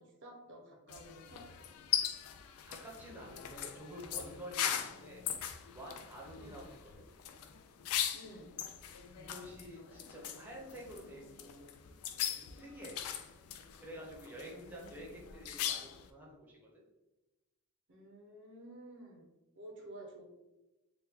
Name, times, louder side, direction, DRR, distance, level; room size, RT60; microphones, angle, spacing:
voice 1, 0.0-1.5 6.4-6.6 8.1-8.5 14.6-15.2 17.9-19.3 19.6-20.2, right 1 dB, 55° right, 1 dB, 0.6 m, -52 dB
sound 1, 0.9-16.1, left 9 dB, 80° left, 0.3 m, -40 dB
voice 2, 2.7-5.3 5.7-7.1 9.1-11.7 12.4-13.0 13.8-16.8, equal, 10° right, -4 dB, 0.6 m, -49 dB
2.9 x 2.2 x 3.4 m, 1.0 s
head